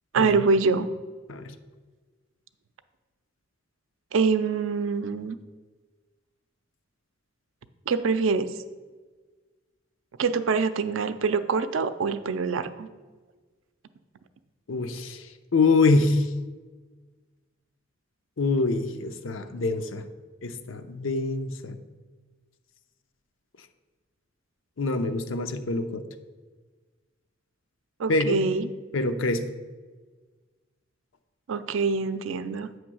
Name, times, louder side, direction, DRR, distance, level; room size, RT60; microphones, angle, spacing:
voice 1, 0.1-0.9 4.1-5.4 7.9-8.5 10.2-12.9 28.0-28.7 31.5-32.7, right 4 dB, 80° right, 12 dB, 0.4 m, -25 dB
voice 2, 14.7-15.3 15.5-16.3 18.4-20.0 20.4-21.8 24.8-26.0 28.1-28.4 28.9-29.5, left 3 dB, 85° left, 8 dB, 0.6 m, -25 dB
8.5 x 3.2 x 6.1 m, 1.4 s
head